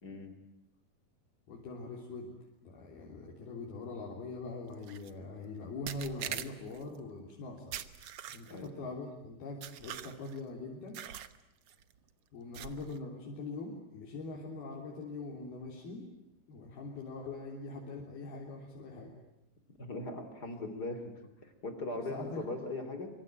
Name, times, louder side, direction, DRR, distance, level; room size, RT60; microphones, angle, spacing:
voice 1, 0.0-0.3 8.5-8.7 19.8-21.1 21.4-23.1, left 2 dB, 25° left, 8 dB, 3.4 m, -39 dB
voice 2, 1.5-2.3 2.6-7.8 8.3-11.0 12.3-16.1 16.5-19.1 22.1-22.5, left 3 dB, 80° left, -2 dB, 5.4 m, -43 dB
sound 1, 4.8-5.1 5.9-6.8 7.7-8.7 9.6-10.4 10.9-11.4 11.7-11.9 12.5-13.0, right 10 dB, 85° right, 1.2 m, -42 dB
25.5 x 25.0 x 9.1 m, 0.87 s
omnidirectional pair, 4.4 m